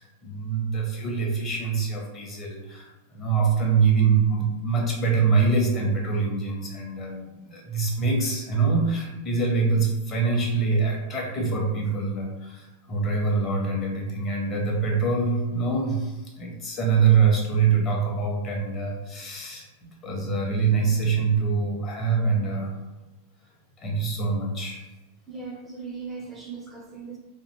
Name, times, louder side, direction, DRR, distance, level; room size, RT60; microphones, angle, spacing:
voice 1, 0.0-19.7 20.0-22.7 23.8-24.8, right 5 dB, 25° left, -1 dB, 0.6 m, -24 dB
voice 2, 25.3-27.2, right 4 dB, 15° right, -1 dB, 0.4 m, -38 dB
2.5 x 2.1 x 2.7 m, 1.1 s
figure-of-eight pair, 90°, 0 cm